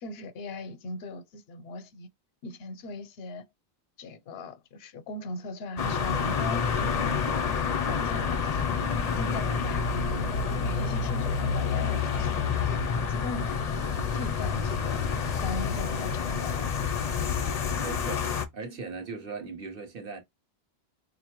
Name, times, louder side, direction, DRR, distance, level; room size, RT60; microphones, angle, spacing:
voice 1, 0.0-2.1 2.4-3.4 4.0-7.5 7.9-8.8 9.1-10.3 10.6-13.6 14.1-15.1 15.4-16.7, left 2 dB, 80° left, 0.8 m, -39 dB
sound 1, 5.8-18.4, left 6 dB, 50° left, 0.6 m, -28 dB
voice 2, 17.8-20.2, right 4 dB, 65° right, 1.1 m, -39 dB
4.1 x 2.7 x 2.9 m
omnidirectional pair, 1.0 m